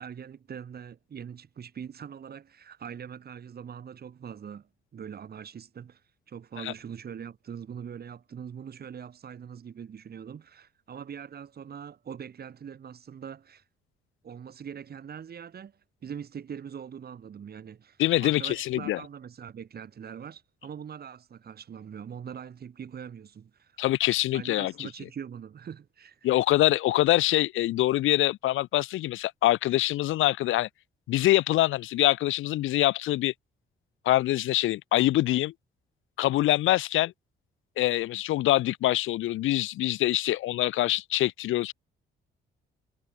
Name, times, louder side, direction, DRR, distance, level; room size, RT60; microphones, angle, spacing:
voice 1, 0.0-13.6 14.2-23.8 24.3-26.3, right 7 dB, 50° right, 4.9 m, -42 dB
voice 2, 18.0-19.0 23.8-24.9 26.2-30.7 31.1-33.3 34.0-35.5 36.2-37.1 37.8-41.7, left 15 dB, 85° left, 1.4 m, -24 dB
cardioid pair, 90°, 20 cm